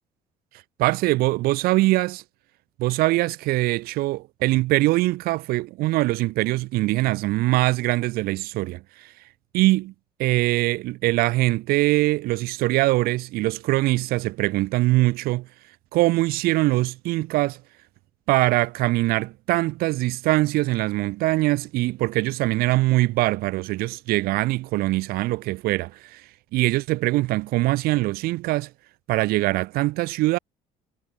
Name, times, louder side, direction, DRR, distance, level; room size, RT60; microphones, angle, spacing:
voice 1, 0.8-2.2 2.8-9.1 9.5-9.9 10.2-15.5 15.9-17.6 18.3-26.2 26.5-28.7 29.1-30.4, right 19 dB, 75° right, 0.8 m, -22 dB
cardioid pair, 100°, 16 cm